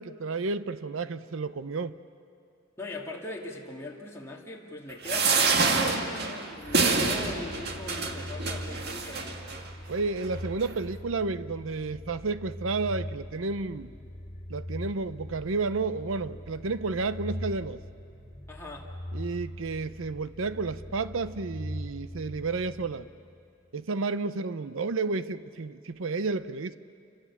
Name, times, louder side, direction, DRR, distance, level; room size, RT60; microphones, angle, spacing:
voice 1, 0.0-2.0 9.9-13.9 14.5-17.8 19.1-23.1 23.7-26.8, right 3 dB, 75° right, 13 dB, 0.7 m, -31 dB
voice 2, 2.8-9.4 18.5-18.9, left 2 dB, 15° left, -3 dB, 2.4 m, -40 dB
sound 1, 5.0-9.6 10.2-10.3 10.6-10.7, right 4 dB, 55° right, 2.1 m, -27 dB
sound 2, 6.6-23.4, equal, 35° left, 3.0 m, -41 dB
29.5 x 26.5 x 7.3 m, 2.5 s
head